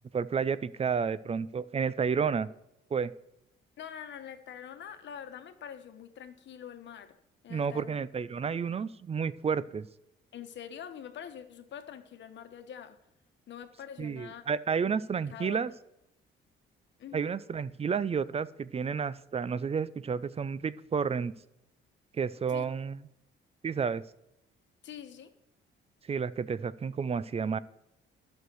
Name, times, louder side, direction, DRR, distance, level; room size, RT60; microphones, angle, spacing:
voice 1, 0.1-2.5 2.9-3.1 7.5-9.9 14.0-15.7 17.1-21.3 22.1-23.0 23.6-24.0 26.1-27.6, right 6 dB, 30° right, 0.5 m, -31 dB
voice 2, 3.8-7.2 7.4-8.0 10.3-13.0 13.5-14.5 15.3-15.6 17.0-17.4 22.5-22.6 24.8-25.3, left 8 dB, 65° left, 1.2 m, -45 dB
11.0 x 6.5 x 6.3 m
cardioid pair, 90°, 20 cm